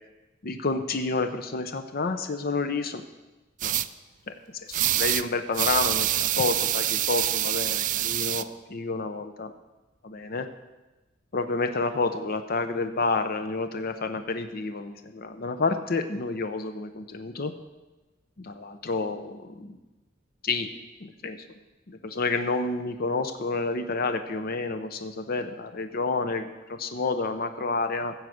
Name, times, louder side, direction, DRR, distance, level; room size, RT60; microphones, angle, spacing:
voice 1, 0.4-3.0 3.6-3.8 4.3-4.4 4.7-9.5 10.0-10.5 11.3-17.5 18.4-19.8 20.4-20.7 21.0-21.4 21.9-28.1, left 3 dB, 50° left, 8 dB, 0.7 m, -29 dB
sound 1, 3.6-3.9 4.7-5.2 5.5-8.4, right 13 dB, 45° right, 0.3 m, -26 dB
14.5 x 4.8 x 7.8 m, 1.1 s
head